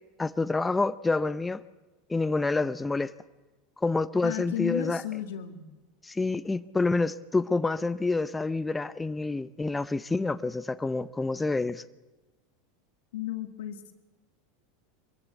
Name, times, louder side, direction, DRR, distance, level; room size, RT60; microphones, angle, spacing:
voice 1, 0.2-1.6 2.1-3.1 3.8-5.0 6.0-11.8, left 3 dB, 10° left, 13 dB, 0.6 m, -28 dB
voice 2, 4.2-5.6 13.1-13.8, left 12 dB, 80° left, 8 dB, 1.9 m, -33 dB
23.0 x 15.5 x 8.1 m, 1.2 s
hypercardioid pair, 100°, 0 cm